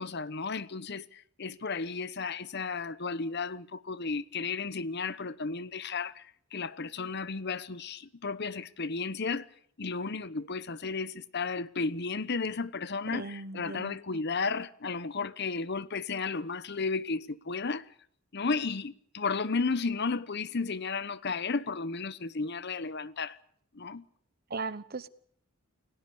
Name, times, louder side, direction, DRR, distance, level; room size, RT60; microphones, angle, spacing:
voice 1, 0.0-9.5 9.8-17.9 18.3-23.4 23.7-24.0, left 4 dB, 50° left, 0.9 m, -33 dB
voice 2, 13.1-14.2 24.5-25.1, right 3 dB, 45° right, 1.0 m, -38 dB
28.5 x 17.5 x 6.9 m
head